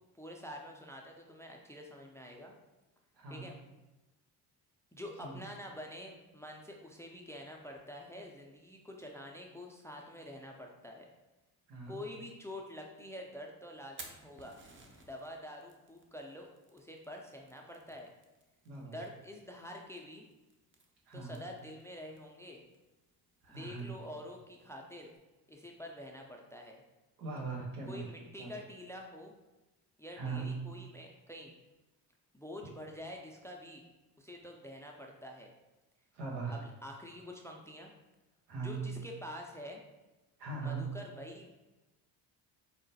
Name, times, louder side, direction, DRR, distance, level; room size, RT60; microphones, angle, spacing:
voice 1, 0.1-2.5 3.3-3.6 4.9-11.1 11.9-14.6 15.1-18.1 18.9-20.3 21.1-22.6 23.5-25.1 25.5-26.8 27.9-29.3 30.0-31.5 32.3-33.8 34.2-35.5 36.5-37.9 38.6-39.8 40.6-41.5, left 1 dB, 5° left, 1 dB, 0.4 m, -47 dB
voice 2, 3.1-3.5 5.2-5.5 11.7-12.0 18.6-19.0 21.1-21.4 23.4-24.0 27.2-28.1 28.4-28.6 30.1-30.7 36.1-36.6 38.5-39.0 40.4-41.0, right 4 dB, 90° right, -2 dB, 1.0 m, -40 dB
Fire, 13.8-25.2, right 3 dB, 25° right, 0.6 m, -59 dB
4.7 x 2.1 x 2.7 m, 1.1 s
supercardioid pair, 55°, 46 cm